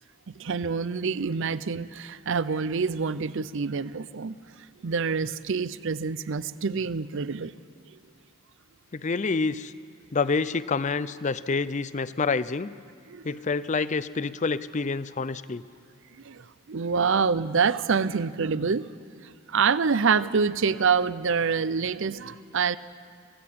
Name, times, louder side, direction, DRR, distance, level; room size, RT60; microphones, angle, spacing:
voice 1, 0.4-4.4 4.8-7.5 13.1-13.3 16.1-18.9 19.2-22.8, right 5 dB, 55° right, 16 dB, 0.6 m, -26 dB
voice 2, 8.9-9.7 10.1-12.7 13.2-15.6, left 4 dB, 30° left, 16 dB, 0.5 m, -27 dB
22.5 x 16.5 x 8.6 m, 2.2 s
head